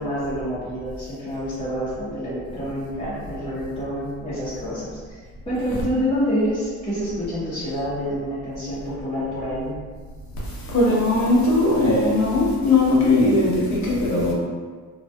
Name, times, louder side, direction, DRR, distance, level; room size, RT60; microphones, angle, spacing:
voice 1, 0.0-5.2 5.4-9.8, equal, 20° left, -13 dB, 0.9 m, -27 dB
voice 2, 10.7-14.3, left 2 dB, 65° left, -6 dB, 0.9 m, -19 dB
2.7 x 2.3 x 2.3 m, 1.5 s
cardioid pair, 90°, 30 cm